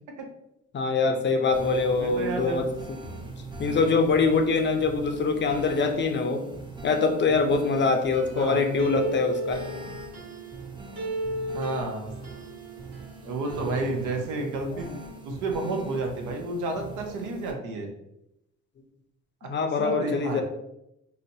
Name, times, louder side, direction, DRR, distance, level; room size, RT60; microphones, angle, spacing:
voice 1, 0.7-2.7 3.6-6.5 6.8-9.6 14.7-14.8 19.5-20.4, left 4 dB, 40° left, 5 dB, 0.5 m, -24 dB
sound 1, 1.5-17.5, right 3 dB, 15° right, 0.5 m, -42 dB
voice 2, 1.8-2.6 3.6-3.8 8.3-8.6 11.5-12.1 13.2-15.0 15.2-17.9 19.4-19.5 19.8-20.4, right 2 dB, 90° right, 3 dB, 0.6 m, -31 dB
sound 2, 8.1-10.7 11.0-13.1 13.4-13.7, equal, 60° right, 1.1 m, -35 dB
3.8 x 2.0 x 2.7 m, 0.84 s
cardioid pair, 90°, 30 cm